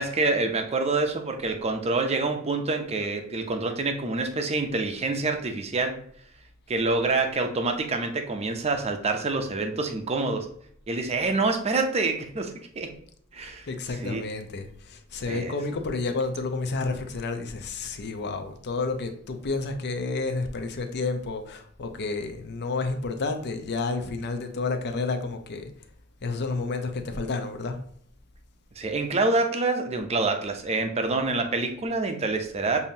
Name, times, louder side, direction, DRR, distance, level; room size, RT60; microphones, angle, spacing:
voice 1, 0.0-5.9 6.7-10.5 10.9-12.9 13.3-13.7 13.9-14.2 15.3-15.5 28.8-32.8, right 3 dB, 30° right, 5 dB, 0.6 m, -26 dB
voice 2, 13.4-25.7 26.2-27.8, left 3 dB, 50° left, 6 dB, 0.6 m, -30 dB
6.9 x 2.7 x 2.7 m, 0.63 s
head